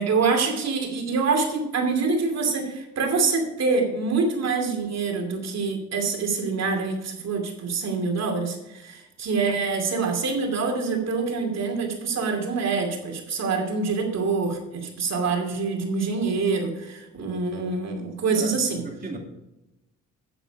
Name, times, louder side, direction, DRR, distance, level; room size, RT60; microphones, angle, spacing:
voice 1, 0.0-18.8, right 4 dB, 60° right, 3 dB, 2.6 m, -25 dB
voice 2, 18.4-19.2, right 3 dB, 30° right, 1 dB, 2.5 m, -36 dB
9.0 x 8.1 x 4.8 m, 0.95 s
cardioid pair, 90°, 30 cm